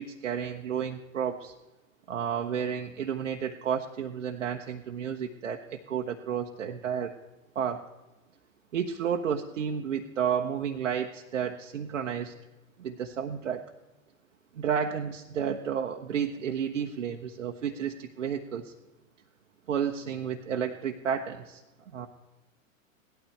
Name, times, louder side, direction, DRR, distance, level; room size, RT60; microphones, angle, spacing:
voice 1, 0.0-1.5 2.1-7.1 7.5-7.8 8.7-12.3 12.8-13.6 14.5-18.7 19.7-21.6 21.9-22.1, right 8 dB, 65° right, 2 dB, 0.9 m, -31 dB
17.5 x 12.0 x 3.3 m, 1.1 s
figure-of-eight pair, 105°, 41 cm